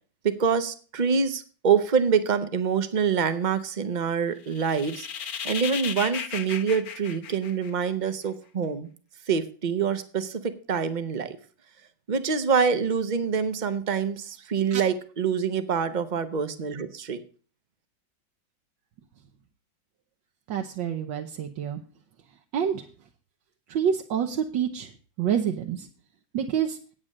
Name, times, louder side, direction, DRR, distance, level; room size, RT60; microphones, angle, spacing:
voice 1, 0.2-5.1 5.4-8.9 9.3-11.4 12.1-17.2, right 6 dB, 55° right, 11 dB, 0.5 m, -26 dB
sound 1, 4.5-8.1, left 7 dB, 60° left, 1.2 m, -35 dB
voice 2, 20.5-21.8 22.5-22.8 23.7-24.9 25.2-25.9 26.3-26.8, right 8 dB, 75° right, 4 dB, 1.6 m, -27 dB
8.7 x 8.7 x 6.4 m, 0.40 s
omnidirectional pair, 2.1 m